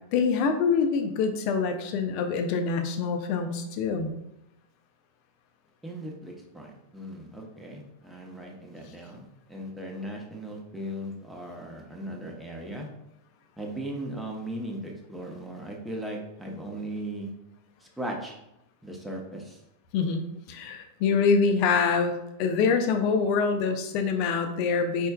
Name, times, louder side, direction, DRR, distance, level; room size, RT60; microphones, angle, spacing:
voice 1, 0.1-4.1 19.9-20.2 20.5-25.1, left 5 dB, 45° left, 6 dB, 0.6 m, -25 dB
voice 2, 5.8-12.9 13.6-17.3 17.8-18.3 18.8-19.6, right 1 dB, 5° right, -1 dB, 0.9 m, -38 dB
4.5 x 4.3 x 2.3 m, 0.87 s
figure-of-eight pair, 90°, 0 cm